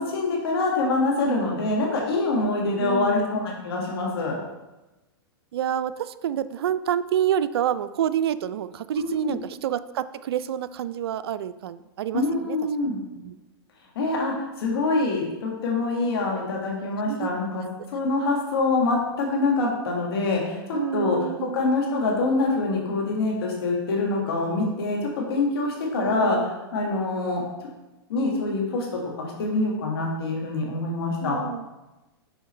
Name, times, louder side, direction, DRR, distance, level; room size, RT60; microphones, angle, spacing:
voice 1, 0.0-4.4 8.9-9.3 12.1-13.0 13.9-27.4 28.1-31.4, left 3 dB, 75° left, -1 dB, 1.7 m, -25 dB
voice 2, 2.8-3.2 5.5-12.6 13.1-13.3 17.1-17.3 20.7-21.6 26.0-26.5 31.2-31.7, right 10 dB, 80° right, 14 dB, 0.4 m, -28 dB
6.4 x 4.5 x 4.2 m, 1.1 s
hypercardioid pair, 125°, 13 cm